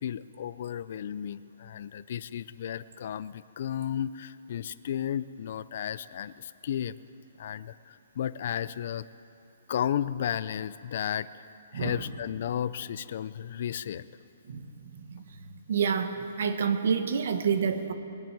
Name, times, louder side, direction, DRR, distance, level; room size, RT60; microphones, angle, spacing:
voice 1, 0.0-6.9 7.4-9.1 9.7-11.5 11.7-14.0, left 9 dB, 45° left, 16 dB, 0.4 m, -33 dB
voice 2, 15.7-17.9, right 6 dB, 55° right, 8 dB, 1.2 m, -28 dB
21.5 x 7.4 x 9.2 m, 2.6 s
hypercardioid pair, 170°, 0 cm